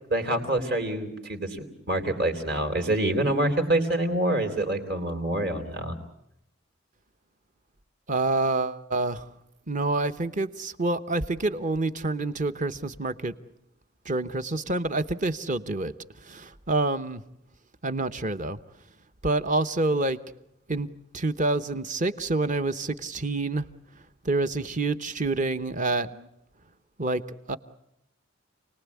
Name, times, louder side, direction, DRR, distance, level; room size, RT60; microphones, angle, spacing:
voice 1, 0.1-6.0, right 1 dB, 55° right, 5 dB, 3.5 m, -26 dB
voice 2, 8.1-9.3 9.7-13.3 14.0-15.9 16.2-17.2 17.8-18.6 19.2-20.2 20.7-20.9 21.1-23.7 24.2-26.3 27.0-27.2 27.5-27.6, right 2 dB, 40° right, 10 dB, 0.9 m, -27 dB
29.0 x 19.5 x 8.4 m, 0.81 s
head